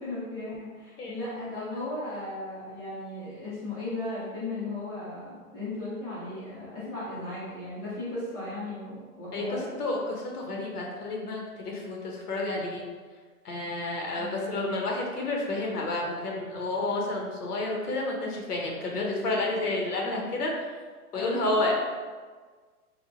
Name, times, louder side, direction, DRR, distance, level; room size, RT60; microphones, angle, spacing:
voice 1, 0.0-9.6 14.1-14.8 18.9-19.3 21.1-21.4, left 2 dB, 10° left, -11 dB, 0.5 m, -36 dB
voice 2, 9.3-12.8 13.4-20.5 21.1-21.7, left 2 dB, 85° left, -1 dB, 0.8 m, -30 dB
3.1 x 2.2 x 2.5 m, 1.5 s
hypercardioid pair, 145°, 45 cm